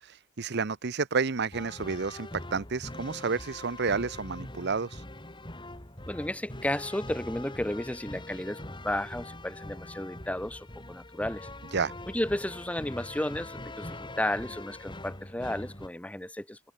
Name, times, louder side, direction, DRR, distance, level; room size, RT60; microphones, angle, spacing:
voice 1, 0.0-5.0 11.7-11.9, right 5 dB, 60° right, 0.8 m, -30 dB
sound 1, 1.5-15.9, left 1 dB, 25° left, 5.5 m, -43 dB
voice 2, 6.1-11.5 12.1-16.6, left 1 dB, 5° left, 0.9 m, -33 dB
head